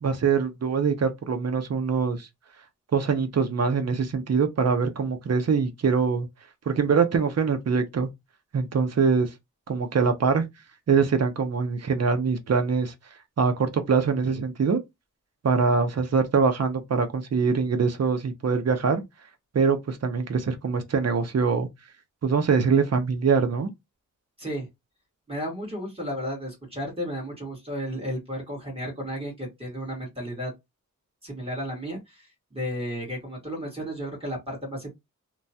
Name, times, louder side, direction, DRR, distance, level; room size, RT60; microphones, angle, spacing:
voice 1, 0.0-2.3 2.9-6.3 6.7-8.1 8.5-9.3 9.7-10.4 10.9-12.9 13.4-14.8 15.4-19.0 19.5-21.7 22.2-23.7, right 5 dB, 50° right, 0.7 m, -23 dB
voice 2, 25.3-30.5 31.2-34.9, equal, 15° right, 1.7 m, -33 dB
3.0 x 2.3 x 2.7 m
wide cardioid pair, 85°, 33 cm